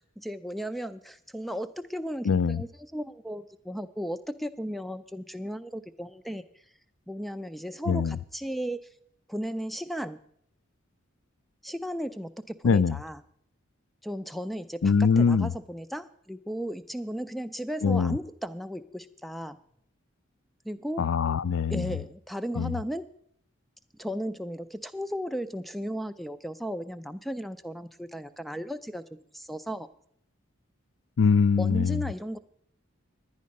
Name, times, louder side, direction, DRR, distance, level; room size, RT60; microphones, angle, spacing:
voice 1, 0.2-6.4 7.1-8.9 9.3-10.2 11.6-13.2 14.0-19.6 20.7-21.1 21.7-23.1 23.9-29.0 29.3-29.9 31.6-32.4, equal, ahead, 0.3 m, -35 dB
voice 2, 2.3-2.6 7.9-8.2 12.6-13.0 14.8-15.5 17.8-18.2 21.0-21.8 22.6-22.7 31.2-32.0, left 5 dB, 75° left, 0.4 m, -23 dB
11.0 x 9.5 x 5.3 m
head